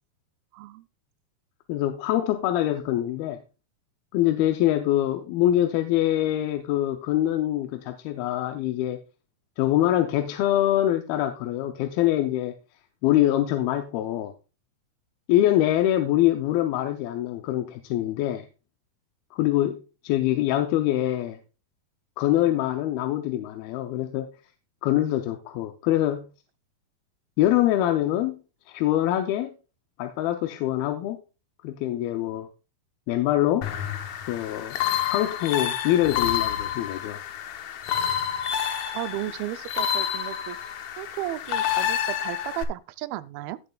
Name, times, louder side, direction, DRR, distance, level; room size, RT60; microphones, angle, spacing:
voice 1, 0.5-0.9 38.9-43.6, right 15 dB, 90° right, 2.5 m, -34 dB
voice 2, 1.7-3.4 4.1-9.0 9.6-12.5 13.0-14.3 15.3-18.5 19.3-21.4 22.2-24.3 24.8-26.3 27.4-28.4 28.7-29.5 30.0-31.2 31.6-32.5 33.1-33.7 34.3-34.8 35.1-37.2, left 13 dB, 90° left, 2.6 m, -24 dB
sound 1, 33.6-42.6, left 9 dB, 70° left, 1.8 m, -29 dB
16.5 x 6.8 x 2.3 m
omnidirectional pair, 4.2 m